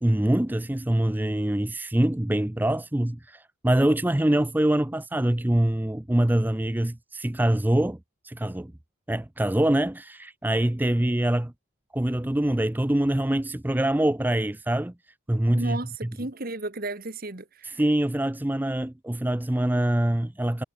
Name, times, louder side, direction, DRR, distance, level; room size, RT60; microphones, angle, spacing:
voice 1, 0.0-8.0 8.2-8.7 9.1-11.5 11.9-14.9 15.3-15.8 17.6-20.6, right 1 dB, 10° right, 0.4 m, -24 dB
voice 2, 15.5-17.8, right 2 dB, 45° right, 1.7 m, -34 dB
head